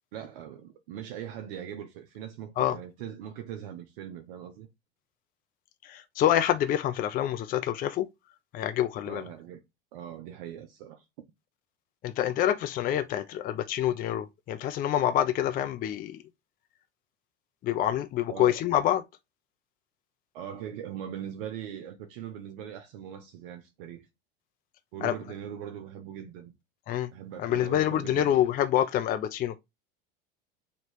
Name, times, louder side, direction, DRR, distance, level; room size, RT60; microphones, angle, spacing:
voice 1, 0.1-4.7 9.0-9.6 9.9-11.1 18.3-18.6 20.3-24.1 24.9-26.5 27.1-28.3, right 9 dB, 70° right, 0.7 m, -41 dB
voice 2, 5.8-8.1 8.5-9.2 12.0-16.2 17.6-19.0 25.0-25.1 26.9-27.1 27.4-29.6, left 11 dB, 30° left, 0.4 m, -27 dB
3.1 x 2.8 x 4.2 m
hypercardioid pair, 90°, 29 cm